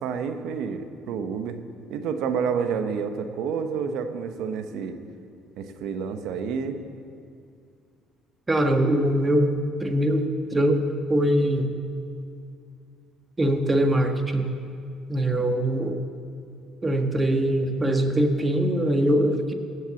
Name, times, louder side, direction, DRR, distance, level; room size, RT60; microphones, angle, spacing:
voice 1, 0.0-1.6 1.9-5.0 5.6-6.8, right 6 dB, 75° right, 8 dB, 1.1 m, -29 dB
voice 2, 8.5-11.7 13.4-14.5 15.1-16.0 16.8-19.5, right 1 dB, 20° right, 5 dB, 1.6 m, -22 dB
17.0 x 8.2 x 7.1 m, 2.4 s
supercardioid pair, 75°, 0 cm